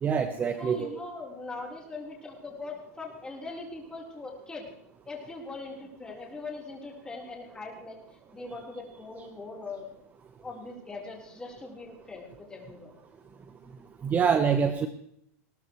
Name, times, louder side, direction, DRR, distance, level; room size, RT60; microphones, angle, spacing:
voice 1, 0.0-1.0 14.0-14.9, right 6 dB, 20° right, 8 dB, 0.9 m, -25 dB
voice 2, 0.6-4.7 5.1-8.0 8.3-9.9 10.4-12.9, left 3 dB, 10° left, -2 dB, 3.9 m, -41 dB
20.5 x 17.5 x 3.1 m, 0.72 s
supercardioid pair, 145°, 8 cm